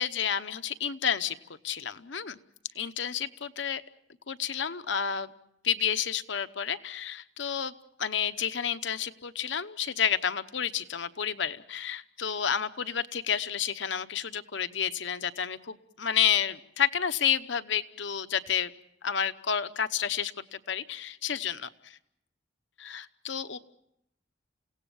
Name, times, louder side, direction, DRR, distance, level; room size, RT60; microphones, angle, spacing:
voice 1, 0.0-1.4 1.6-2.4 2.7-3.8 4.3-5.3 5.6-7.7 8.0-18.7 19.0-22.0 22.8-23.6, left 8 dB, 70° left, 11 dB, 0.9 m, -30 dB
29.0 x 17.0 x 7.1 m, 0.78 s
head